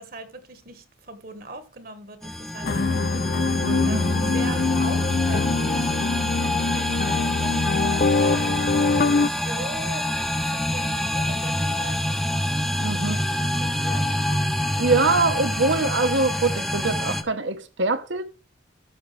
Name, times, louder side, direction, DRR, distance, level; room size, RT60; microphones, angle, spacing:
voice 1, 0.0-8.5 9.2-10.1 10.4-12.2 13.0-14.2, right 2 dB, 45° right, 1.4 m, -40 dB
sound 1, 2.2-17.2, left 1 dB, ahead, 0.7 m, -27 dB
sound 2, 2.6-9.3, left 4 dB, 45° left, 0.5 m, -23 dB
voice 2, 3.6-4.0 12.8-13.2 14.8-18.2, right 3 dB, 65° right, 1.2 m, -23 dB
14.0 x 6.7 x 3.3 m
head